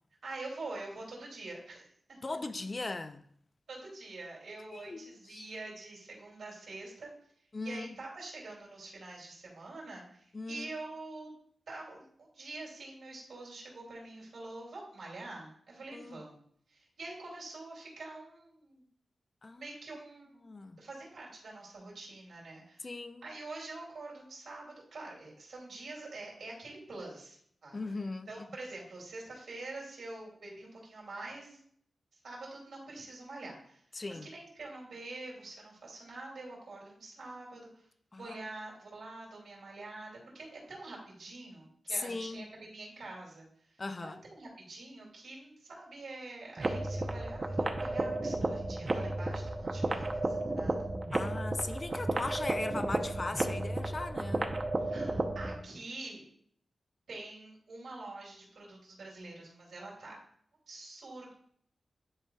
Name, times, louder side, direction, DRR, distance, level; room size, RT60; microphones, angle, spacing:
voice 1, 0.2-2.2 3.7-7.1 7.6-11.3 11.7-16.4 16.7-18.8 19.5-22.9 23.2-27.8 28.3-31.6 32.2-33.8 34.1-37.7 38.2-43.5 44.0-50.9 54.8-56.2 57.1-60.2 60.7-61.3, right 2 dB, 85° right, 2.5 m, -46 dB
voice 2, 2.2-3.2 4.7-5.5 7.5-8.0 10.3-10.7 15.9-16.2 19.4-19.7 20.4-20.8 22.8-23.3 27.7-28.3 33.9-34.3 38.1-38.4 41.9-42.5 43.8-44.2 51.1-54.6, left 3 dB, 40° left, 0.5 m, -39 dB
sound 1, 46.6-55.6, right 2 dB, 40° right, 0.7 m, -33 dB
9.8 x 4.3 x 2.3 m
cardioid pair, 70°, 0 cm